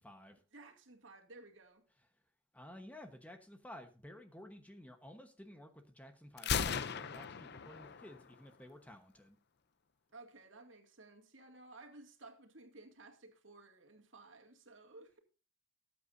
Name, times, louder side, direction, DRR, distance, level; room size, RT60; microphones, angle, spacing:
voice 1, 0.0-0.4 2.5-9.4, left 1 dB, 10° left, 1.1 m, -53 dB
voice 2, 0.5-1.8 10.1-15.2, right 2 dB, 75° right, 2.2 m, -56 dB
Gunshot gunfire, 6.4-8.3, left 7 dB, 55° left, 0.6 m, -37 dB
18.5 x 8.4 x 2.6 m
head